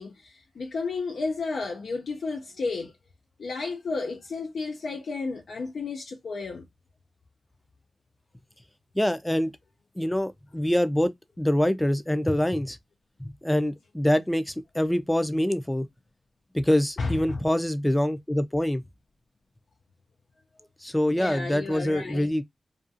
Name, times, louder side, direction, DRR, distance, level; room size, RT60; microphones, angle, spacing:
voice 1, 0.0-2.9 3.4-6.7 17.0-17.4 21.1-22.3, left 4 dB, 80° left, 0.4 m, -32 dB
voice 2, 9.0-9.5 10.0-11.1 11.4-12.8 13.4-15.9 16.5-18.8 20.8-22.4, left 1 dB, 10° left, 0.4 m, -25 dB
2.5 x 2.3 x 2.5 m
cardioid pair, 60°, 0 cm